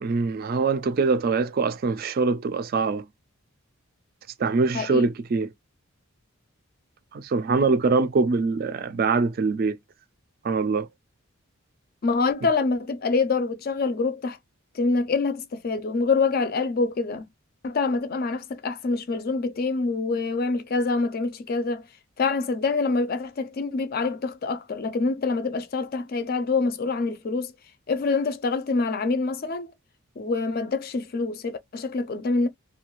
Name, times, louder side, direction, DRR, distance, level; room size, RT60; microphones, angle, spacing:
voice 1, 0.0-3.0 4.4-5.5 7.1-9.8 10.4-10.9, right 4 dB, 40° right, 0.3 m, -23 dB
voice 2, 4.7-5.1 12.0-14.4 14.7-17.3 17.6-21.9 22.2-27.5 27.9-29.7 30.2-32.5, left 4 dB, 40° left, 0.4 m, -26 dB
2.4 x 2.3 x 2.9 m
head